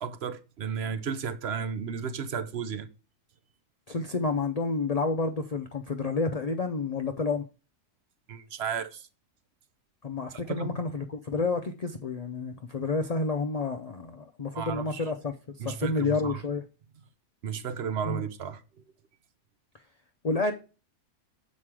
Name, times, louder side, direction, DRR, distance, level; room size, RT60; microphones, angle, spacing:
voice 1, 0.0-2.9 8.3-9.0 10.5-10.8 14.5-15.0 15.6-16.3 17.4-18.6, right 7 dB, 55° right, 0.8 m, -33 dB
voice 2, 3.9-7.5 10.0-16.6 18.0-18.2 20.2-20.5, left 3 dB, 55° left, 0.4 m, -30 dB
7.5 x 5.2 x 4.8 m
omnidirectional pair, 1.6 m